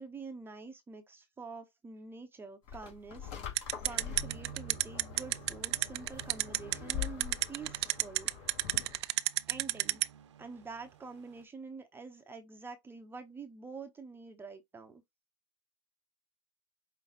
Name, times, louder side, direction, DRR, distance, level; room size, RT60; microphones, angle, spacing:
voice 1, 0.0-3.3 3.8-8.6 9.5-10.0 10.4-15.0, right 4 dB, 15° right, 0.7 m, -47 dB
sound 1, 2.7-9.0, left 9 dB, 55° left, 2.4 m, -44 dB
sound 2, 3.6-10.1, right 17 dB, 65° right, 0.4 m, -28 dB
sound 3, 3.9-11.4, right 10 dB, 80° right, 0.8 m, -53 dB
5.5 x 3.2 x 2.3 m
hypercardioid pair, 110°, 15 cm